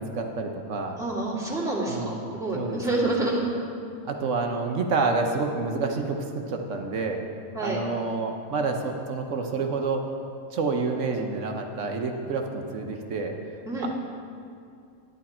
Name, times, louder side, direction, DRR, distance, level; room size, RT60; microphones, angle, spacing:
voice 1, 0.0-1.0 1.8-2.3 2.5-2.8 4.0-7.2 7.6-10.1 10.5-13.3 13.8-13.9, right 4 dB, 65° right, 3 dB, 1.1 m, -28 dB
voice 2, 1.0-3.4 7.5-7.8 13.6-13.9, right 2 dB, ahead, -6 dB, 2.0 m, -28 dB
11.0 x 10.0 x 4.3 m, 2.4 s
omnidirectional pair, 1.5 m